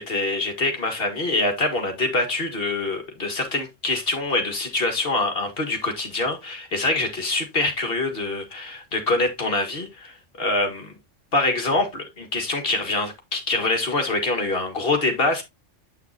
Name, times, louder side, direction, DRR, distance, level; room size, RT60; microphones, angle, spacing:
voice 1, 0.0-10.9 11.3-15.4, left 2 dB, 50° left, 2.0 m, -25 dB
8.6 x 5.8 x 2.7 m
omnidirectional pair, 1.3 m